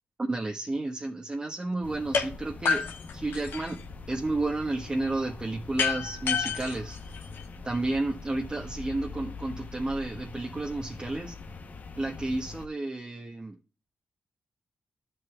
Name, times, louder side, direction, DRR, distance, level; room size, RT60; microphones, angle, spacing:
voice 1, 0.2-2.8 3.1-3.8 4.1-7.0 7.6-11.4 11.9-13.6, right 2 dB, 25° right, 1.3 m, -31 dB
sound 1, 1.8-12.7, left 3 dB, 50° left, 0.9 m, -43 dB
sound 2, 2.1-2.3 2.7-3.9 5.8-7.8, left 6 dB, 85° left, 1.5 m, -29 dB
13.0 x 7.9 x 2.4 m
cardioid pair, 90°, 4 cm